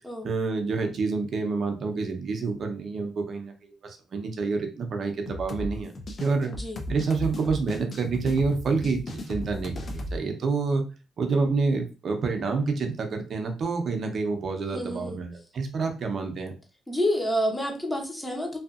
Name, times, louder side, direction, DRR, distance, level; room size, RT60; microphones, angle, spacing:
voice 1, 0.2-3.5 3.8-5.9 6.2-6.5 6.9-9.0 9.3-10.8 11.2-16.6, right 4 dB, 55° right, 5 dB, 0.6 m, -28 dB
sound 1, 5.3-10.2, left 1 dB, 50° left, 0.5 m, -35 dB
voice 2, 6.4-6.8 14.7-15.2 16.9-18.6, equal, 10° left, 1 dB, 0.9 m, -28 dB
2.7 x 2.4 x 2.4 m, 0.33 s
cardioid pair, 90°, 0 cm